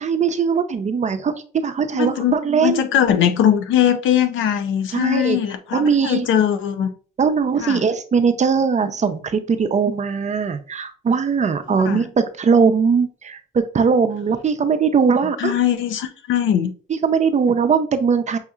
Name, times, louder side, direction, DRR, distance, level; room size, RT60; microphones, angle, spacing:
voice 1, 0.0-2.8 4.9-5.4 5.7-6.2 7.2-15.5 16.9-18.4, right 6 dB, 35° right, 0.6 m, -20 dB
voice 2, 1.9-6.9 7.6-7.8 11.7-12.0 15.4-16.7, left 10 dB, 80° left, 0.6 m, -20 dB
6.3 x 2.8 x 2.4 m
cardioid pair, 90°, 20 cm